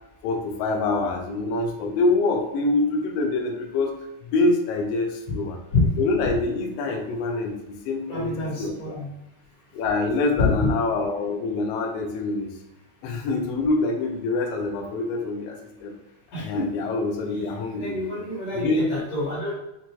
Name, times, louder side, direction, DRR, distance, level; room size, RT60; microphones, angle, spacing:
voice 1, 0.2-3.9 4.2-5.6 6.0-9.0 9.7-12.5 13.0-15.9 16.3-18.0 18.5-18.8, left 3 dB, 85° left, 2 dB, 1.4 m, -25 dB
voice 2, 8.1-9.1 10.4-10.7 16.3-16.7 17.3-17.4 17.7-19.5, left 3 dB, 55° left, -6 dB, 2.4 m, -26 dB
5.9 x 2.2 x 2.9 m, 0.89 s
omnidirectional pair, 3.6 m